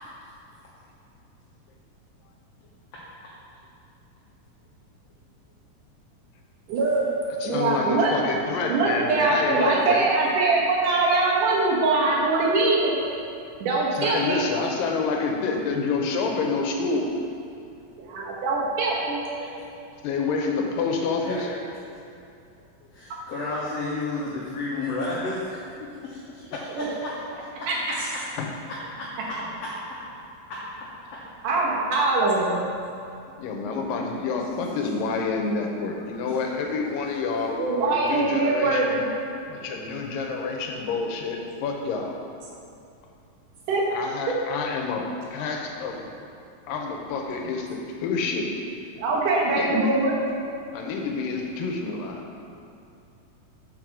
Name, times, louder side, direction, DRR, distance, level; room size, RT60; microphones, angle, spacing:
voice 1, 6.7-7.1 7.4-8.1 8.7-13.0 13.6-14.4 18.0-19.2 26.8-27.0 27.7-27.8 31.4-32.6 37.6-39.0 43.7-43.8 49.0-50.1, right 3 dB, 70° right, -4 dB, 2.9 m, -22 dB
voice 2, 7.4-10.1 13.9-17.1 20.0-21.5 26.5-26.6 28.4-28.5 33.4-39.1 39.5-42.2 43.9-46.2 46.7-48.5 49.5-49.8 50.7-52.3, left 4 dB, 85° left, 2 dB, 2.5 m, -28 dB
voice 3, 21.2-21.5 22.9-27.2 29.0-29.4 34.6-34.9 36.5-36.6, left 2 dB, 65° left, -6 dB, 1.8 m, -32 dB
7.5 x 5.2 x 6.1 m, 2.6 s
omnidirectional pair, 3.9 m